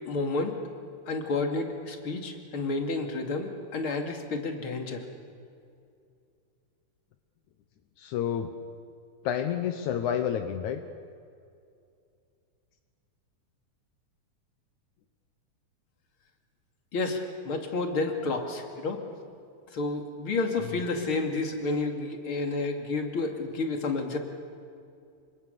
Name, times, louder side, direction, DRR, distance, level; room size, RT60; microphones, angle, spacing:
voice 1, 0.1-0.5 1.1-5.0 16.9-19.0 19.7-24.2, left 3 dB, 45° left, 3 dB, 3.2 m, -30 dB
voice 2, 8.0-8.5 9.2-10.8 20.6-20.8, left 9 dB, 80° left, 7 dB, 2.4 m, -29 dB
28.5 x 25.5 x 6.8 m, 2.4 s
omnidirectional pair, 3.4 m